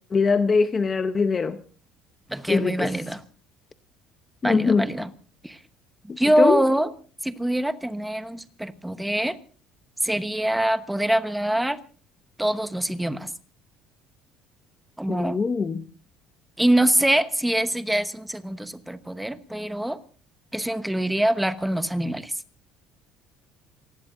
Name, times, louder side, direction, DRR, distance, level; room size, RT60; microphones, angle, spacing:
voice 1, 0.1-1.6 2.5-3.0 4.4-4.9 6.1-6.6 15.1-15.8, left 4 dB, 20° left, 0.7 m, -22 dB
voice 2, 2.3-3.2 4.4-5.1 5.4-5.6 6.2-6.9 7.2-9.4 10.0-11.8 12.4-13.3 15.0-15.4 16.6-20.0 20.5-22.3, right 1 dB, 5° right, 1.0 m, -24 dB
27.0 x 19.5 x 2.6 m
cardioid pair, 160°, 0 cm